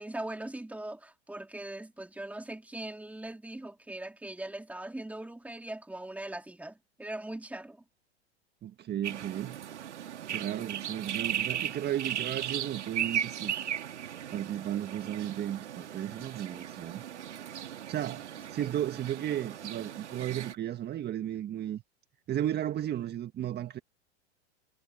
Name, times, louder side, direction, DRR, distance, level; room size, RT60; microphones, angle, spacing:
voice 1, 0.0-7.8, right 1 dB, 5° right, 2.9 m, -40 dB
voice 2, 8.6-9.6 10.3-13.5 14.3-17.0 17.9-21.8 22.3-23.8, right 11 dB, 30° right, 1.7 m, -34 dB
sound 1, 9.0-20.5, right 10 dB, 80° right, 2.2 m, -37 dB
hypercardioid pair, 100°, 34 cm